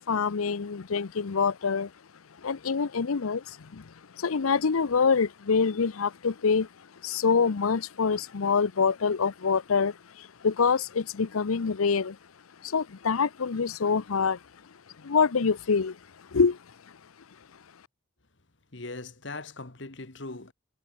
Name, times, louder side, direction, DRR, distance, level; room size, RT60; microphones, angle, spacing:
voice 1, 0.0-1.9 2.4-6.7 7.0-12.2 12.6-14.4 15.0-16.0 16.3-16.6, left 5 dB, 90° left, 0.7 m, -26 dB
voice 2, 18.7-20.5, left 2 dB, 60° left, 1.8 m, -40 dB
head